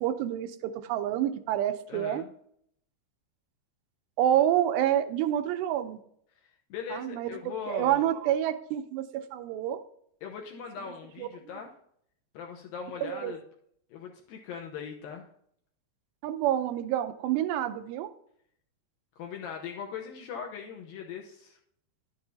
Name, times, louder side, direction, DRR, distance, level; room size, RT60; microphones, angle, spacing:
voice 1, 0.0-2.3 4.2-6.0 6.9-7.3 7.7-9.8 11.2-11.3 13.0-13.3 16.2-18.1, right 11 dB, 85° right, 8 dB, 2.8 m, -28 dB
voice 2, 1.9-2.3 6.4-8.1 10.2-11.7 12.3-13.4 13.9-15.3 19.2-21.6, left 7 dB, 75° left, 1 dB, 2.3 m, -40 dB
11.0 x 7.0 x 2.7 m, 0.67 s
omnidirectional pair, 5.0 m